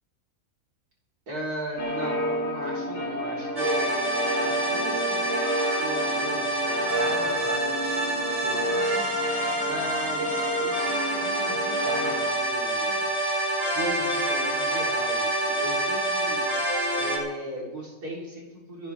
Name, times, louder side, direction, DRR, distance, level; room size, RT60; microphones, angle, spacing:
voice 1, 1.3-9.1 9.6-13.1 13.7-16.4 17.0-18.9, right 1 dB, 80° right, -4 dB, 4.5 m, -38 dB
sound 1, 1.8-12.3, equal, 10° left, 2.4 m, -30 dB
sound 2, 3.6-17.2, right 1 dB, 25° right, 3.2 m, -27 dB
27.5 x 10.5 x 3.6 m, 1.2 s
omnidirectional pair, 1.6 m